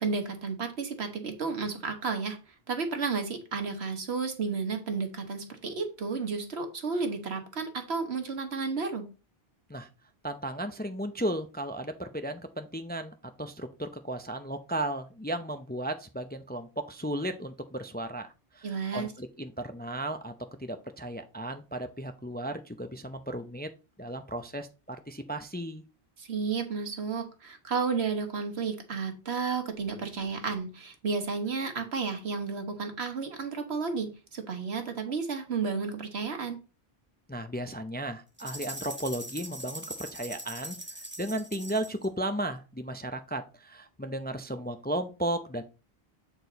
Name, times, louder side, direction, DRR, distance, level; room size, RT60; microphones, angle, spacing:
voice 1, 0.0-2.4 2.7-9.0 18.6-19.1 26.2-36.6, right 5 dB, 85° right, 1.6 m, -32 dB
voice 2, 10.2-20.3 20.6-23.7 24.0-25.8 37.3-40.8 41.2-45.6, right 1 dB, 15° left, 0.4 m, -35 dB
sound 1, 38.4-42.1, right 1 dB, 10° right, 1.1 m, -41 dB
8.3 x 4.5 x 4.0 m
omnidirectional pair, 1.1 m